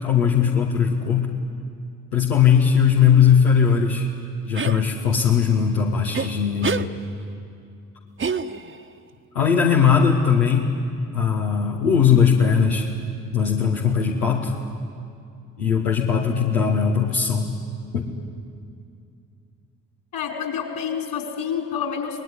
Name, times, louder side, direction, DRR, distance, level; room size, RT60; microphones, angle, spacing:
voice 1, 0.0-1.3 2.1-4.1 4.4-6.8 9.3-10.7 11.1-12.9 13.3-14.5 15.6-17.5 17.9-18.1, left 7 dB, 85° left, -2 dB, 1.7 m, -19 dB
sound 1, 4.5-4.8 6.1-6.3 6.6-6.9 8.2-8.8, right 5 dB, 25° right, 1.3 m, -26 dB
voice 2, 20.1-22.2, left 7 dB, 55° left, 1 dB, 5.6 m, -28 dB
26.0 x 20.0 x 9.9 m, 2.4 s
figure-of-eight pair, 50°, 46 cm